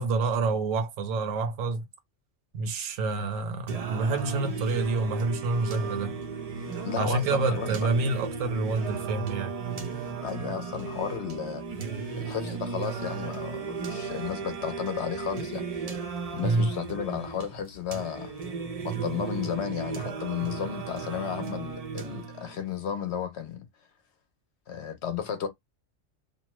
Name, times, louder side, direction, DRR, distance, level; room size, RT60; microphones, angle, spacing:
voice 1, 0.0-1.8 2.5-6.2 7.0-9.6 16.4-16.7, right 3 dB, 80° right, 1.1 m, -28 dB
Singing, 3.7-22.7, right 6 dB, 50° right, 0.4 m, -35 dB
Telephone, 4.4-4.9 5.4-6.0 6.5-7.0 7.5-8.1 8.6-9.1 9.6-10.2 10.7-11.2 11.7-12.3 12.8-13.3 13.8-15.4 15.7-16.4 17.0-17.5 18.0-18.5 19.1-19.6 20.8-20.9, left 5 dB, 90° left, 1.0 m, -47 dB
voice 2, 6.8-7.7 10.2-11.6 12.2-15.9 16.3-18.3 18.8-23.7 24.7-25.5, left 8 dB, 65° left, 0.8 m, -33 dB
2.7 x 2.2 x 2.9 m
omnidirectional pair, 1.3 m